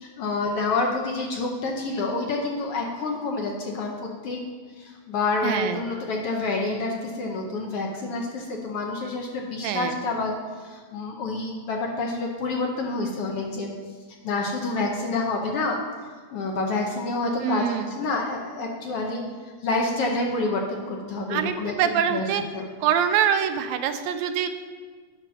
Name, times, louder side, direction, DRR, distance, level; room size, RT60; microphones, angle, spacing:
voice 1, 0.0-4.4 4.8-13.7 14.2-15.8 16.3-19.2 19.6-21.8 22.1-22.2 22.5-22.7, left 3 dB, 65° left, 1 dB, 1.6 m, -28 dB
voice 2, 5.4-5.8 9.6-10.0 17.4-17.9 21.3-22.4 22.8-24.5, right 9 dB, 85° right, 8 dB, 1.9 m, -24 dB
9.1 x 5.9 x 5.7 m, 1.5 s
omnidirectional pair, 3.3 m